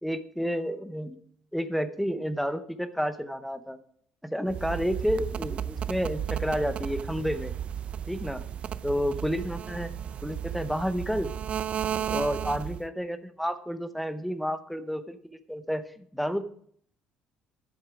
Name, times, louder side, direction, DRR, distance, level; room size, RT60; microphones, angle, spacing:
voice 1, 0.0-1.2 1.5-3.8 4.2-7.5 8.1-8.4 8.8-9.9 10.2-11.3 11.9-16.4, equal, ahead, 11 dB, 0.7 m, -30 dB
sound 1, 4.5-12.9, right 9 dB, 40° right, 0.5 m, -34 dB
11.0 x 7.8 x 5.0 m, 0.62 s
cardioid pair, 140°, 3 cm